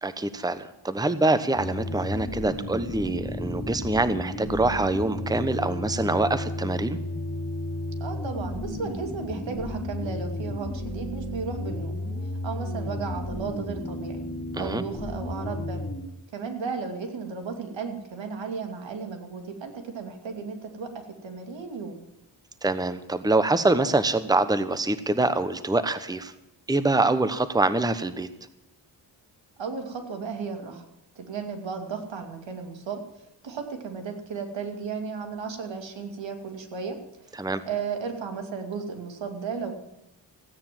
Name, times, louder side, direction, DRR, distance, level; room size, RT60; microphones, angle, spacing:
voice 1, 0.0-7.0 14.5-14.8 22.6-26.3 26.7-28.3 37.4-37.6, right 2 dB, 10° right, 12 dB, 1.0 m, -25 dB
sound 1, 1.5-16.0, left 1 dB, 25° left, 3.5 m, -33 dB
voice 2, 8.0-12.0 12.4-14.2 14.6-15.8 16.3-20.9 21.2-22.0 29.6-30.9 31.2-39.8, right 5 dB, 85° right, 4 dB, 2.7 m, -34 dB
16.0 x 9.4 x 7.6 m, 0.93 s
cardioid pair, 75°, 44 cm